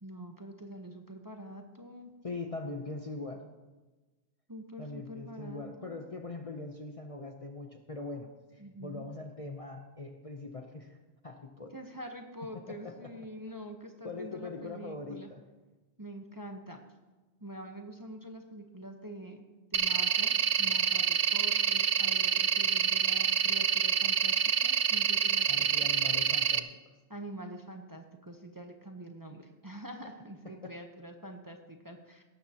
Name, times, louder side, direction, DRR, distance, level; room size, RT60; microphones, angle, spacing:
voice 1, 0.0-2.1 4.5-6.0 8.6-9.0 11.7-15.3 16.0-16.8 17.4-25.7 27.1-32.2, right 1 dB, 20° right, 3 dB, 0.9 m, -45 dB
voice 2, 2.2-3.5 4.8-11.0 11.2-11.7 12.7-13.1 14.0-15.4 25.5-26.7 30.4-30.7, left 3 dB, 35° left, 4 dB, 0.7 m, -42 dB
sound 1, 19.7-26.6, right 8 dB, 60° right, 0.3 m, -27 dB
17.0 x 13.0 x 2.9 m, 1.2 s
omnidirectional pair, 1.2 m